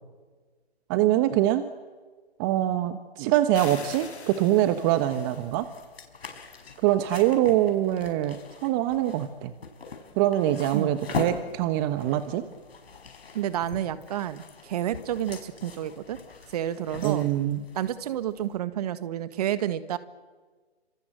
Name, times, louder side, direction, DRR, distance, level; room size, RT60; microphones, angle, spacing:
voice 1, 0.9-1.6 2.4-5.7 6.8-9.5 10.2-12.4 17.0-17.6, right 13 dB, 20° right, 11 dB, 1.1 m, -24 dB
sound 1, 3.5-5.6, left 4 dB, 80° left, 3.5 m, -43 dB
sound 2, 4.3-18.6, left 5 dB, 65° left, 5.4 m, -42 dB
voice 2, 13.3-16.2 16.5-17.3 17.7-20.0, right 11 dB, 35° right, 13 dB, 1.6 m, -30 dB
29.0 x 26.5 x 7.8 m, 1.4 s
figure-of-eight pair, 140°, 32 cm